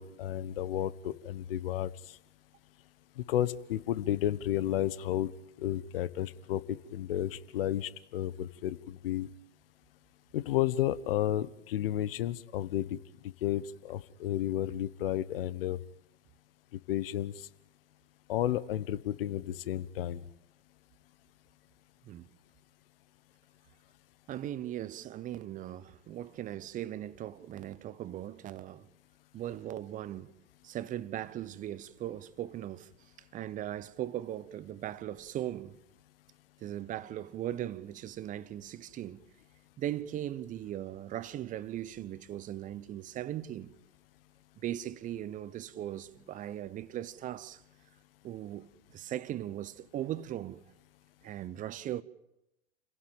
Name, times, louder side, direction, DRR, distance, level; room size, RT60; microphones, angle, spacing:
voice 1, 0.0-1.9 3.2-5.3 5.6-9.3 10.3-13.0 13.4-15.8 16.9-17.3 18.3-20.2, left 12 dB, 55° left, 1.3 m, -32 dB
voice 2, 24.3-28.9 29.3-30.3 30.6-32.9 33.3-35.8 36.6-39.3 39.8-43.7 44.6-47.6 48.2-50.6 51.2-52.0, right 12 dB, 25° right, 1.0 m, -39 dB
29.5 x 17.0 x 9.0 m
figure-of-eight pair, 110°, 34 cm